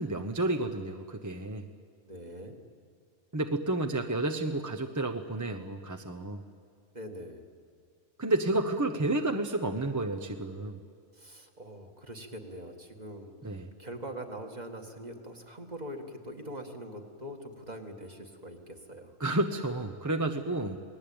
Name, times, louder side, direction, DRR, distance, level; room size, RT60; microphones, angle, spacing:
voice 1, 0.0-1.6 3.3-6.4 8.2-10.8 13.4-13.7 19.2-20.8, right 2 dB, 15° right, 4 dB, 0.8 m, -31 dB
voice 2, 2.1-2.6 6.9-7.4 11.1-19.2, right 1 dB, 30° right, 3 dB, 2.1 m, -43 dB
28.5 x 19.5 x 8.7 m, 2.2 s
omnidirectional pair, 1.4 m